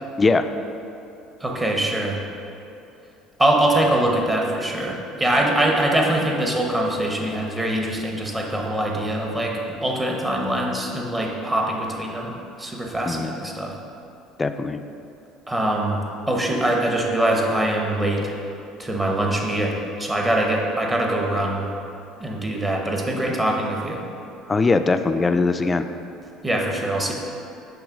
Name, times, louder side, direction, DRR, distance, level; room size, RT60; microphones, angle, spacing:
voice 1, 1.4-2.2 3.4-13.7 15.5-16.0 16.3-18.3 18.8-21.7 22.2-24.0 26.4-27.1, right 1 dB, 15° right, 0 dB, 0.9 m, -23 dB
voice 2, 14.4-14.8 24.5-25.9, left 3 dB, 25° left, 9 dB, 0.3 m, -20 dB
6.2 x 3.1 x 5.1 m, 2.8 s
supercardioid pair, 95°, 0 cm